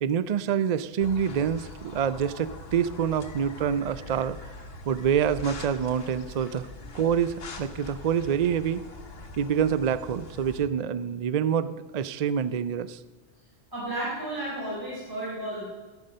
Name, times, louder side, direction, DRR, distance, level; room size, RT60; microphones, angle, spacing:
voice 1, 0.0-4.5 4.9-6.7 6.9-8.8 9.4-13.0, right 8 dB, 55° right, 14 dB, 0.4 m, -26 dB
sound 1, 1.0-10.6, left 2 dB, 60° left, 1.4 m, -43 dB
voice 2, 13.7-15.7, right 1 dB, 20° right, -7 dB, 4.1 m, -33 dB
14.0 x 11.0 x 6.5 m, 1.3 s
omnidirectional pair, 1.2 m